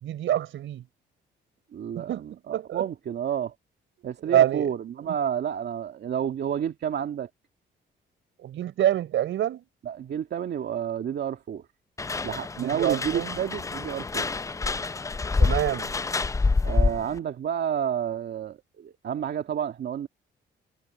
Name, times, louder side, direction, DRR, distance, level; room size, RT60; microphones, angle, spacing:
voice 1, 0.0-0.8 1.9-2.2 2.5-2.8 4.2-4.7 5.0-5.1 8.4-9.6 12.6-13.4 15.4-15.9, right 12 dB, 75° right, 4.5 m, -26 dB
voice 2, 1.7-3.5 4.0-7.3 9.8-11.6 12.2-14.3 16.6-20.1, right 9 dB, 60° right, 2.0 m, -30 dB
sound 1, 12.0-17.2, left 3 dB, 15° left, 0.4 m, -27 dB
cardioid pair, 90°, 20 cm